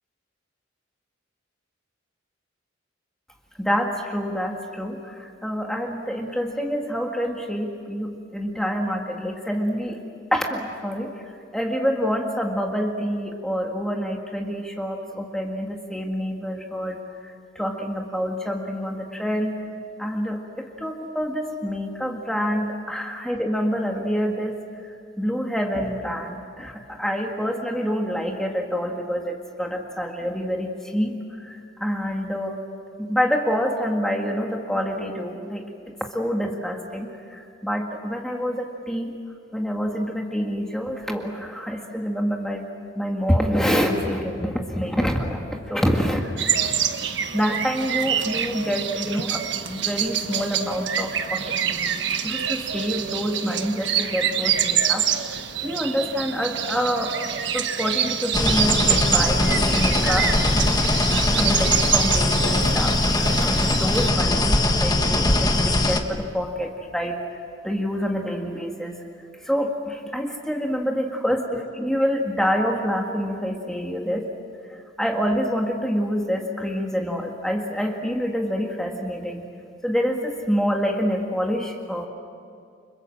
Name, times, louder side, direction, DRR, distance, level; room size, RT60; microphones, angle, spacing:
voice 1, 3.6-10.0 10.3-19.5 20.0-32.6 33.0-39.2 39.5-42.7 43.0-46.4 47.3-57.2 57.5-60.3 61.0-69.0 69.4-74.3 74.7-79.5 79.8-82.1, equal, 5° left, 1 dB, 1.8 m, -27 dB
sound 1, 46.4-64.1, right 9 dB, 65° right, 1.5 m, -26 dB
sound 2, 58.3-66.0, left 2 dB, 20° left, 1.5 m, -21 dB
29.5 x 26.0 x 7.7 m, 2.3 s
head